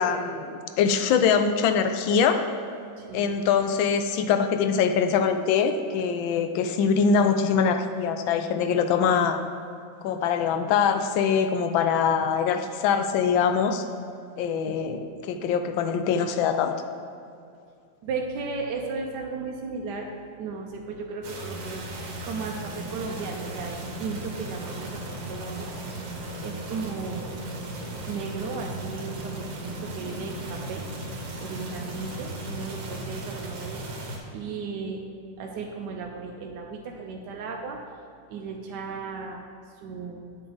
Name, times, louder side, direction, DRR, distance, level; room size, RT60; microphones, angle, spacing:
voice 1, 0.0-2.4 3.1-9.4 10.0-13.8 14.4-16.7, left 6 dB, 90° left, 8 dB, 1.4 m, -23 dB
voice 2, 3.0-3.5 14.6-14.9 18.0-20.1 20.4-25.7 26.4-27.3 28.1-30.9 31.4-34.0 34.3-35.0 35.4-37.8 38.3-39.4 39.8-40.2, right 4 dB, 70° right, 1 dB, 1.2 m, -35 dB
sound 1, 21.2-34.2, right 1 dB, 90° right, 2.0 m, -36 dB
8.8 x 6.7 x 3.9 m, 2.4 s
omnidirectional pair, 2.1 m